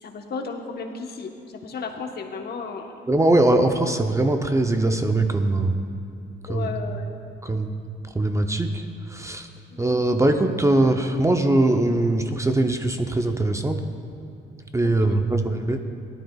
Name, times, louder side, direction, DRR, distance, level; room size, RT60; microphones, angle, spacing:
voice 1, 0.0-2.9 6.5-7.1 9.7-9.8 14.8-15.1, left 5 dB, 55° left, 3 dB, 1.1 m, -34 dB
voice 2, 3.1-5.8 6.5-6.8 7.4-7.7 8.1-8.8 9.1-9.5 9.8-13.8 14.7-15.9, right 2 dB, 15° right, 5 dB, 0.6 m, -21 dB
17.0 x 12.0 x 2.3 m, 2.6 s
cardioid pair, 90°, 20 cm